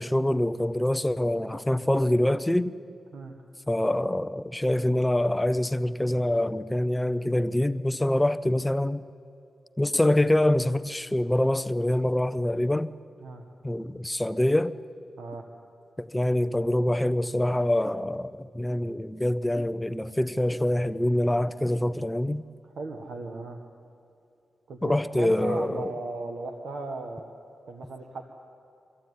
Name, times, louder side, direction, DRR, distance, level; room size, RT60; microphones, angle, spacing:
voice 1, 0.0-2.7 3.7-9.0 9.8-12.9 13.6-14.8 16.0-22.4 24.8-25.9, left 1 dB, 10° left, 0.6 m, -25 dB
voice 2, 22.6-23.6 24.7-27.3 27.7-28.2, right 3 dB, 85° right, 1.5 m, -37 dB
24.0 x 14.5 x 9.5 m
cardioid pair, 90°, 0 cm